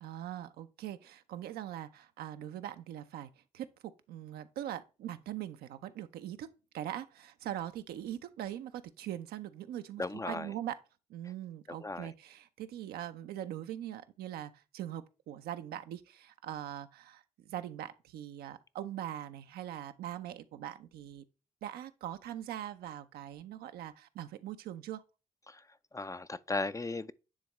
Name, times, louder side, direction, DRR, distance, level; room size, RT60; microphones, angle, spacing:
voice 1, 0.0-3.7 4.1-6.5 6.7-10.8 11.1-21.2 21.6-25.0, right 11 dB, 75° right, 0.5 m, -42 dB
voice 2, 10.0-10.5 11.8-12.1 25.5-25.7 25.9-27.1, left 2 dB, 20° left, 0.4 m, -36 dB
9.6 x 3.5 x 3.0 m
hypercardioid pair, 40°, 16 cm